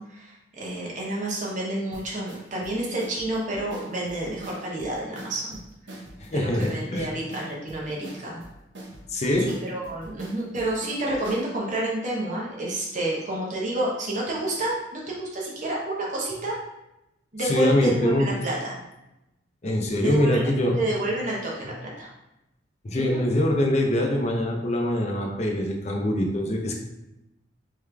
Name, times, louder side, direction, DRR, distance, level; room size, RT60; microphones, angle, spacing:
voice 1, 0.0-5.6 6.3-8.4 9.5-16.5 17.3-18.8 20.0-20.5 20.8-22.1 22.9-23.3, right 1 dB, 40° right, -4 dB, 1.0 m, -29 dB
sound 1, 1.9-11.5, right 1 dB, 70° right, 0.8 m, -42 dB
voice 2, 6.2-7.1 9.1-9.5 17.4-18.3 19.6-20.8 22.8-26.8, left 1 dB, 35° left, 1 dB, 0.6 m, -24 dB
3.6 x 3.2 x 3.3 m, 0.92 s
head